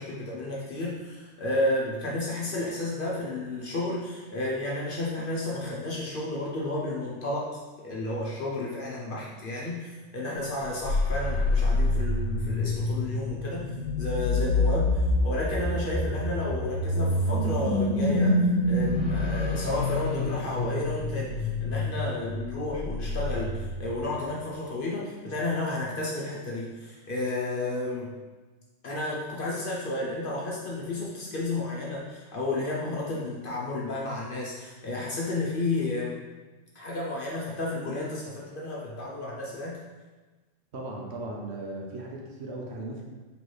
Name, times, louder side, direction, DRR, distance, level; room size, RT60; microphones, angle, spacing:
voice 1, 0.0-7.5 7.8-13.7 14.0-28.1 28.8-36.2 36.7-39.8, left 2 dB, 50° left, -4 dB, 0.7 m, -32 dB
sound 1, 10.6-24.1, left 2 dB, 75° left, 1.0 m, -27 dB
voice 2, 40.7-43.0, right 2 dB, 65° right, -2 dB, 0.9 m, -37 dB
4.3 x 3.0 x 3.1 m, 1.3 s
omnidirectional pair, 1.3 m